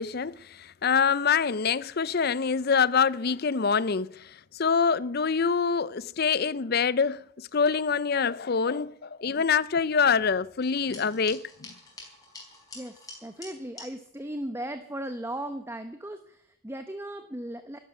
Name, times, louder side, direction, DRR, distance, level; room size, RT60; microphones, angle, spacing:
voice 1, 0.0-11.7, left 6 dB, 45° left, 0.5 m, -25 dB
sound 1, 10.6-13.9, left 3 dB, 15° left, 5.1 m, -46 dB
voice 2, 12.7-17.8, right 1 dB, 10° right, 0.8 m, -37 dB
12.5 x 12.0 x 9.4 m
head